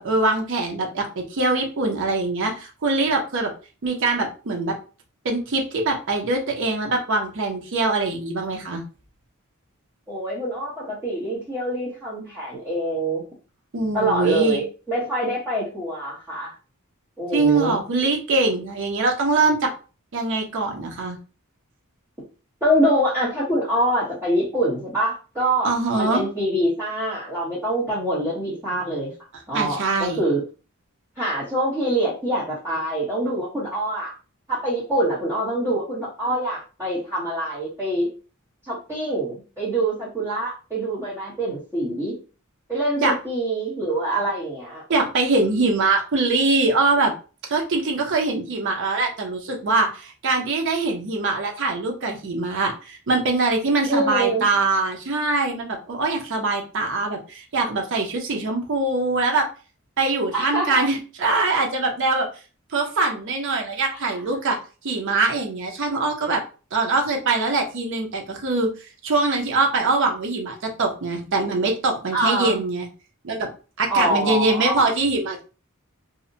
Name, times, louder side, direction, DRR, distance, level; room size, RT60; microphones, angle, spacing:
voice 1, 0.0-3.5 3.8-4.8 5.2-8.8 13.7-14.6 17.3-19.7 20.1-21.2 25.6-26.2 29.5-30.2 43.0-43.1 44.9-47.1 47.5-59.4 60.0-62.3 62.7-64.6 64.8-66.4 66.7-68.7 69.0-72.9 73.2-73.5 73.8-75.4, right 3 dB, 60° right, 2 dB, 0.6 m, -23 dB
voice 2, 10.1-13.2 13.9-16.5 17.2-17.8 22.6-29.1 29.5-30.4 31.2-34.1 34.5-38.1 38.7-42.1 42.7-44.8 53.9-54.4 60.3-60.8 63.9-64.1 72.1-72.6 73.9-74.9, right 1 dB, 15° right, -10 dB, 0.9 m, -25 dB
2.7 x 2.1 x 2.6 m, 0.35 s
head